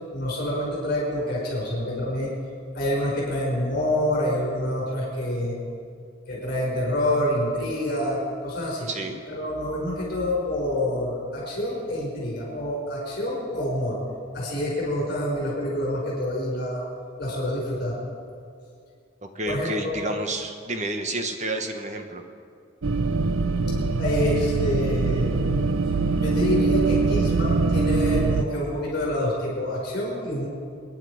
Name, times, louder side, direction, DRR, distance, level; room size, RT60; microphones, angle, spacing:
voice 1, 0.0-2.3 2.7-5.6 6.3-8.9 9.3-14.0 14.3-16.8 17.2-18.0 19.5-20.0 24.0-25.6 26.2-30.5, left 1 dB, 50° left, -4 dB, 5.6 m, -27 dB
voice 2, 8.9-9.2 19.2-22.2, right 1 dB, 35° right, 5 dB, 1.2 m, -30 dB
sound 1, 22.8-28.4, right 3 dB, 85° right, 0.7 m, -23 dB
27.5 x 10.0 x 5.1 m, 2.3 s
head